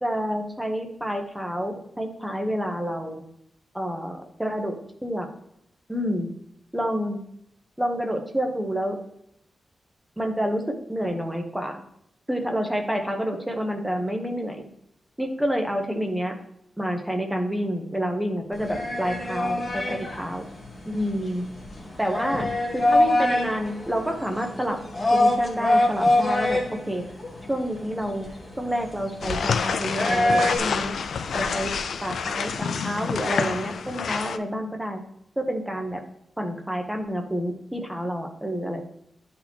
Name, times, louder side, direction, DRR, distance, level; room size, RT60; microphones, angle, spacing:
voice 1, 0.0-3.2 3.7-5.3 5.9-6.3 6.7-7.2 7.8-9.0 10.2-11.8 12.3-14.6 15.2-16.3 16.8-20.4 20.9-21.4 22.0-24.8 25.1-26.6 26.9-27.0 27.5-28.3 28.6-30.9 31.3-35.0 35.4-36.0 36.4-38.8, equal, 5° right, 3 dB, 0.8 m, -28 dB
sound 1, 18.5-30.6, left 1 dB, 20° left, 1.2 m, -25 dB
sound 2, 29.2-34.4, left 6 dB, 70° left, 0.4 m, -28 dB
11.5 x 4.1 x 2.9 m, 0.75 s
wide cardioid pair, 175°, 0 cm